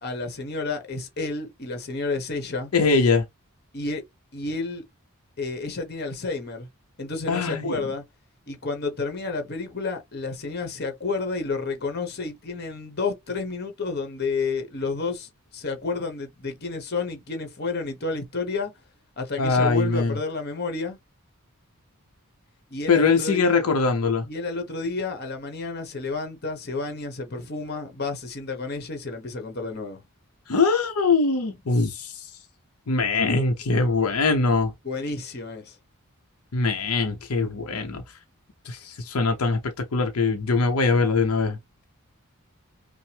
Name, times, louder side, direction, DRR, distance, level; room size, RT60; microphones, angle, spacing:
voice 1, 0.0-2.7 3.7-4.0 4.3-4.8 5.4-6.7 7.0-8.0 8.5-18.7 19.2-21.0 22.7-23.6 24.3-30.0 34.8-35.8, left 3 dB, 45° left, 1.1 m, -30 dB
voice 2, 2.7-3.2 7.3-7.8 19.4-20.2 22.9-24.3 30.5-32.3 32.9-34.7 36.5-38.0 38.6-41.6, left 4 dB, 75° left, 0.7 m, -22 dB
5.5 x 2.0 x 3.3 m
head